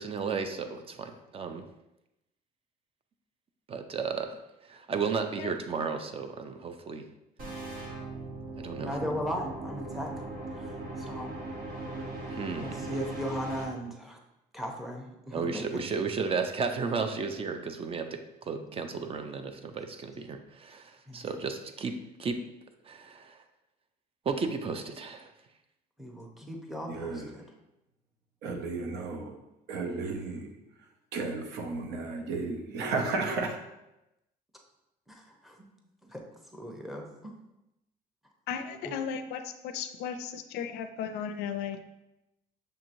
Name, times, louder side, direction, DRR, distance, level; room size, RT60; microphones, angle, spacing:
voice 1, 0.0-1.6 3.7-4.4 4.7-7.1 8.5-9.1 12.3-12.9 15.3-18.1 18.4-22.4 22.9-23.4 24.3-25.3, right 5 dB, 35° right, 7 dB, 0.4 m, -34 dB
sound 1, 7.4-13.6, right 2 dB, 65° right, 1.1 m, -39 dB
voice 2, 8.8-10.3 10.6-10.7 11.0-11.4 12.6-14.2 14.5-15.8 18.5-18.7 21.1-21.2 26.0-27.4 35.1-35.6 36.1-36.2 36.5-37.1 38.9-39.0, equal, ahead, 1 dB, 0.7 m, -37 dB
voice 3, 26.9-27.3 28.4-29.4 29.7-33.6, right 3 dB, 85° right, 4 dB, 0.7 m, -34 dB
voice 4, 38.5-41.8, left 7 dB, 85° left, 9 dB, 0.4 m, -35 dB
6.4 x 2.9 x 2.6 m, 0.92 s
cardioid pair, 110°, 17 cm